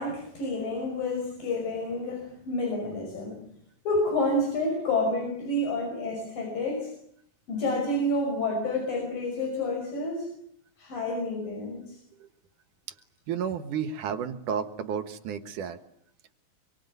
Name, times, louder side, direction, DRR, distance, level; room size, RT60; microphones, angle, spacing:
voice 1, 0.0-3.5 3.9-6.9 7.5-10.3 10.8-12.0, left 2 dB, 80° left, 2 dB, 7.1 m, -29 dB
voice 2, 13.3-15.8, right 7 dB, 70° right, 11 dB, 2.9 m, -32 dB
26.0 x 24.0 x 9.5 m, 0.70 s
omnidirectional pair, 3.9 m